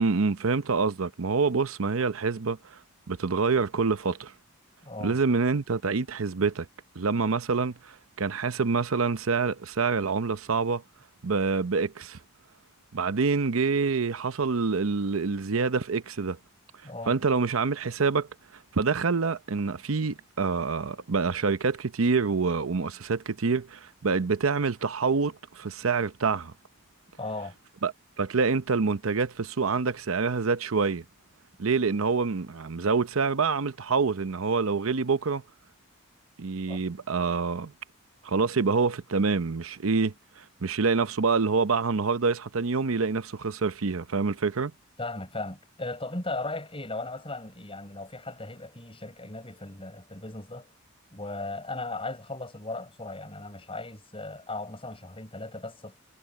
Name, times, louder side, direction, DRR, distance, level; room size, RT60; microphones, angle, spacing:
voice 1, 0.0-2.8 3.1-4.3 5.0-6.7 7.0-10.8 11.2-12.2 12.9-16.4 17.1-18.3 18.7-26.5 27.8-27.9 28.2-31.0 31.6-35.4 36.4-37.7 38.2-44.7, right 4 dB, 85° right, 0.7 m, -26 dB
voice 2, 4.8-5.2 16.8-17.1 27.2-27.5 36.7-36.8 45.0-50.7 51.1-56.0, left 2 dB, 25° left, 6.8 m, -37 dB
head